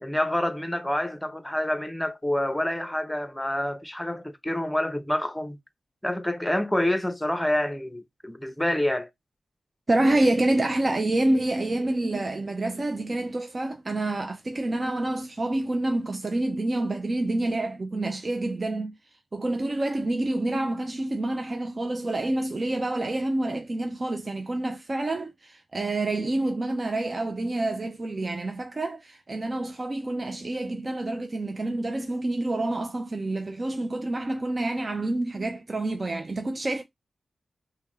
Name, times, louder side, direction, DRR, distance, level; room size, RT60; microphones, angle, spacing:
voice 1, 0.0-5.6 6.0-9.1, left 1 dB, 10° left, 0.8 m, -27 dB
voice 2, 9.9-18.9 19.3-36.8, right 2 dB, 45° right, 0.5 m, -27 dB
2.8 x 2.2 x 3.5 m
cardioid pair, 45°, 0 cm